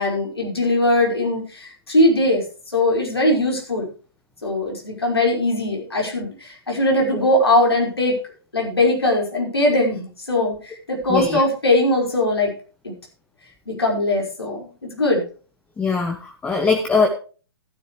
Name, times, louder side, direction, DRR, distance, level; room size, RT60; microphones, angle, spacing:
voice 1, 0.0-2.4 2.7-3.9 4.4-8.2 8.5-12.5 12.8-12.9 13.7-15.2, left 1 dB, 80° left, -1 dB, 5.4 m, -20 dB
voice 2, 11.1-11.4 15.8-17.1, left 4 dB, 10° left, 4 dB, 1.2 m, -21 dB
14.5 x 10.5 x 3.3 m, 0.37 s
figure-of-eight pair, 120°, 13 cm